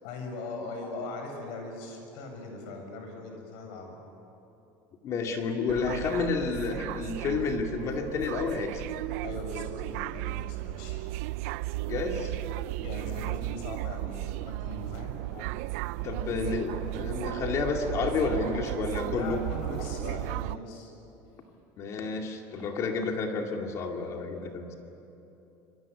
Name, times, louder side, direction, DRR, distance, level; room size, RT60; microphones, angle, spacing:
voice 1, 0.0-4.0 9.2-11.0 12.8-15.2 19.1-20.9, left 3 dB, 70° left, 3 dB, 7.2 m, -40 dB
voice 2, 5.0-8.8 11.9-12.3 15.3-15.5 16.0-19.4 21.8-24.7, left 4 dB, 40° left, 3 dB, 2.4 m, -30 dB
sound 1, 5.7-20.6, right 18 dB, 85° right, 0.5 m, -35 dB
26.5 x 23.0 x 8.5 m, 3.0 s
cardioid pair, 155°, 8 cm